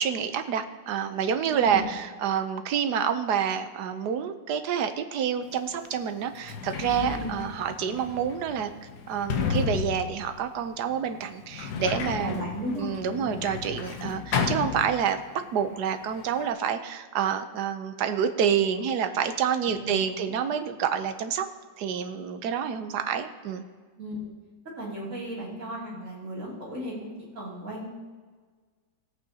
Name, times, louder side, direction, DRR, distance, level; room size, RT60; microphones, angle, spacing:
voice 1, 0.0-8.7 9.1-12.5 12.8-21.5 21.8-23.6, right 8 dB, 70° right, 8 dB, 1.3 m, -28 dB
voice 2, 1.5-1.9 7.0-7.3 11.7-12.9 13.1-13.4 19.7-20.3 24.0-24.2 24.8-27.9, equal, 45° right, -6 dB, 3.2 m, -35 dB
Sliding door, 5.5-5.6 6.3-15.4 15.7-16.5, left 6 dB, 70° left, 1.4 m, -33 dB
17.0 x 8.5 x 2.8 m, 1.5 s
omnidirectional pair, 1.9 m